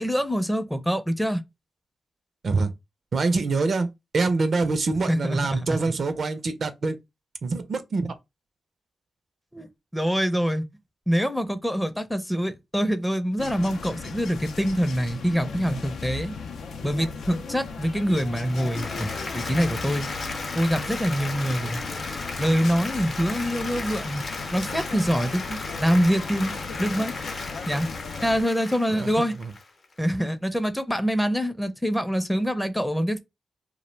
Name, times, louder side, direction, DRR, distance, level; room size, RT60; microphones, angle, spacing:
voice 1, 0.0-1.4 5.1-5.8 9.5-10.7 11.1-16.3 16.8-20.1 20.5-21.8 22.4-24.3 24.5-26.5 26.8-27.2 27.7-27.9 28.2-29.3 30.0-33.2, equal, 5° left, 0.4 m, -25 dB
voice 2, 3.1-3.9 4.1-7.0 7.4-8.1 28.9-29.5, right 3 dB, 60° right, 0.4 m, -25 dB
sound 1, 13.4-28.4, left 4 dB, 85° left, 0.3 m, -37 dB
Applause, 18.3-30.1, left 3 dB, 55° left, 0.7 m, -35 dB
2.3 x 2.1 x 3.1 m
cardioid pair, 60°, 0 cm